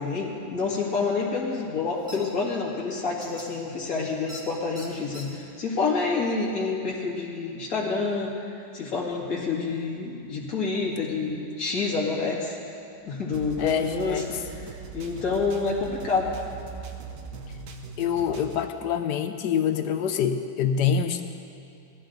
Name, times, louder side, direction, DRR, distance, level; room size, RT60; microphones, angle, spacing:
voice 1, 0.0-12.6 13.1-14.2 14.5-14.7 14.9-16.3, left 4 dB, 50° left, -4 dB, 2.5 m, -28 dB
sound 1, 2.1-2.2 3.2-3.5 4.3-4.4 4.7-5.2, left 1 dB, ahead, 2.1 m, -41 dB
voice 2, 9.4-9.8 13.6-14.2 18.0-21.2, left 8 dB, 75° left, 8 dB, 1.3 m, -26 dB
sound 2, 13.3-18.7, right 6 dB, 65° right, 1.3 m, -41 dB
19.0 x 13.5 x 3.9 m, 2.5 s
omnidirectional pair, 1.9 m